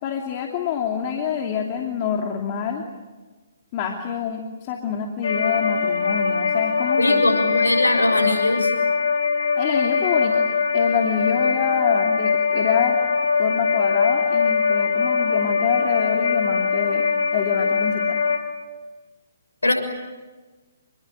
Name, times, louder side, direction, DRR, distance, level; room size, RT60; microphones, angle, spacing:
voice 1, 0.0-2.8 3.7-7.2 9.6-10.4 10.7-13.0 13.4-17.1 17.3-18.2, left 7 dB, 35° left, 2 dB, 2.8 m, -26 dB
sound 1, 5.2-18.4, left 5 dB, 65° left, 4.3 m, -21 dB
voice 2, 7.0-8.7 19.6-19.7, left 2 dB, 85° left, 4 dB, 6.6 m, -20 dB
28.5 x 22.0 x 9.4 m, 1.3 s
figure-of-eight pair, 135°, 0 cm